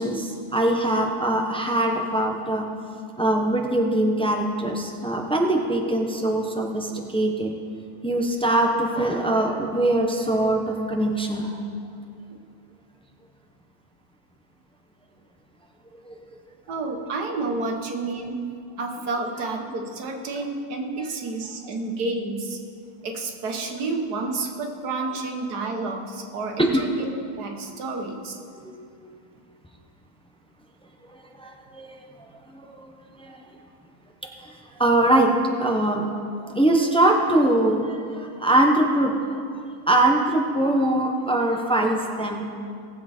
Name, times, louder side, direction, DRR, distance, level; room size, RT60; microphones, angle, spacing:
voice 1, 0.0-2.7 3.2-7.6 8.0-11.6 16.0-16.1 26.6-26.8 28.6-29.1 31.1-32.0 32.5-32.9 33.2-33.4 34.4-34.5 34.8-35.3 35.6-36.1 36.4-39.4 39.9-42.5, right 1 dB, 5° left, 1 dB, 0.6 m, -22 dB
voice 2, 16.7-18.4 18.8-22.6 23.0-26.9 27.4-28.4, right 3 dB, 90° right, 2 dB, 1.8 m, -30 dB
18.5 x 7.6 x 4.4 m, 2.3 s
omnidirectional pair, 1.6 m